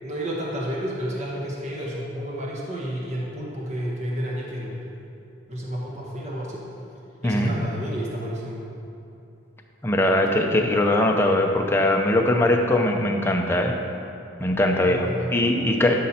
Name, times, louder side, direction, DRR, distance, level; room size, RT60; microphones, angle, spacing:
voice 1, 0.0-4.9 5.5-6.6 7.2-8.6 14.8-15.3, equal, 35° right, -4 dB, 1.3 m, -31 dB
voice 2, 9.8-13.7 14.4-16.0, left 1 dB, 10° left, 1 dB, 0.6 m, -21 dB
12.5 x 5.3 x 4.3 m, 2.8 s
head